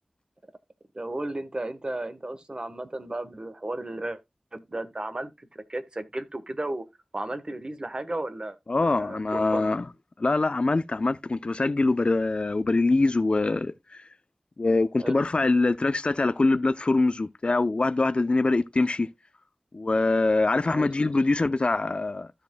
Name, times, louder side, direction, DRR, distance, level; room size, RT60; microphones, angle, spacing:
voice 1, 0.9-4.2 4.5-6.8 7.1-8.6 8.8-9.7 15.0-15.3 20.6-20.9, right 1 dB, 45° right, 1.2 m, -34 dB
voice 2, 8.7-9.9 10.2-14.0 14.6-19.1 19.7-22.3, left 3 dB, 60° left, 0.5 m, -24 dB
15.5 x 5.3 x 2.2 m
wide cardioid pair, 45°, 2 cm